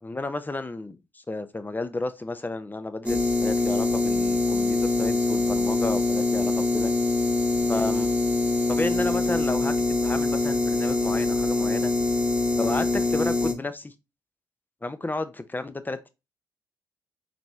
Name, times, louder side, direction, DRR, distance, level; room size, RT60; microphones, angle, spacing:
voice 1, 0.0-6.9 7.7-8.1 8.7-11.9 12.5-13.9 14.8-16.1, left 2 dB, 20° left, 0.8 m, -32 dB
sound 1, 3.1-13.5, left 2 dB, 10° right, 1.2 m, -24 dB
4.1 x 3.0 x 3.4 m
hypercardioid pair, 45°, 10 cm